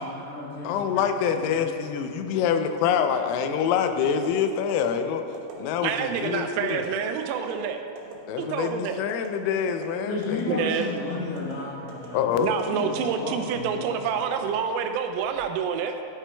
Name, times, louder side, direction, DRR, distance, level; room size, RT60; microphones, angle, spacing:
voice 1, 0.0-0.9 1.3-1.5 10.0-12.4 12.6-12.9 13.2-14.0, left 3 dB, 65° left, -6 dB, 2.7 m, -33 dB
voice 2, 0.6-5.2 5.6-6.8 8.3-10.7 12.1-12.5, left 7 dB, 90° left, 7 dB, 3.3 m, -26 dB
sound 1, 4.1-4.3 4.7-4.9 5.3-5.6 6.0-6.2 6.7-6.9 7.3-7.5 8.0-8.1 8.5-8.8 9.1-9.3 9.7-9.9 10.2-10.5 10.8-11.0 11.4-11.5 11.9-12.1 12.4-12.6 13.0-13.2 13.5-13.7 14.1-14.7 15.2-15.4, right 5 dB, 70° right, 3.0 m, -42 dB
voice 3, 5.8-7.8 8.4-9.0 10.5-10.9 12.4-16.0, right 7 dB, 90° right, 6 dB, 3.3 m, -28 dB
13.0 x 9.0 x 2.2 m, 2.9 s
omnidirectional pair, 5.9 m